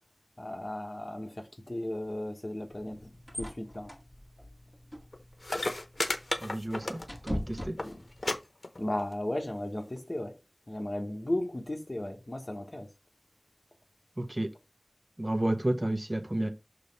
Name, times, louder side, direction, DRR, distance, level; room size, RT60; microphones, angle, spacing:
voice 1, 0.4-3.1 3.4-3.9 7.8-8.0 8.8-10.4 10.7-12.9, left 1 dB, 55° left, 1.3 m, -35 dB
sound 1, 2.6-8.4, equal, 15° left, 2.0 m, -43 dB
sound 2, 5.1-5.2 5.4-7.4 7.6-7.9 8.2-8.4 8.6-9.1 10.0-10.1, left 2 dB, 80° left, 0.8 m, -32 dB
voice 2, 6.4-7.8 14.2-14.5 15.2-16.5, right 1 dB, 45° right, 0.9 m, -31 dB
6.6 x 3.1 x 5.4 m
wide cardioid pair, 40°, 0 cm